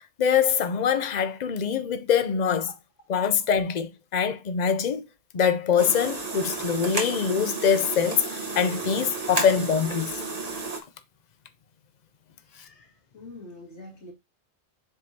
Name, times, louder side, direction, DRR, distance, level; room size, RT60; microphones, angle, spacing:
voice 1, 0.2-2.7 3.1-5.1 5.3-10.2, left 7 dB, 45° left, 0.7 m, -24 dB
sound 1, 5.8-10.8, right 3 dB, 35° right, 1.2 m, -32 dB
voice 2, 12.5-14.1, left 2 dB, 80° left, 2.7 m, -45 dB
7.5 x 4.7 x 2.8 m
omnidirectional pair, 1.2 m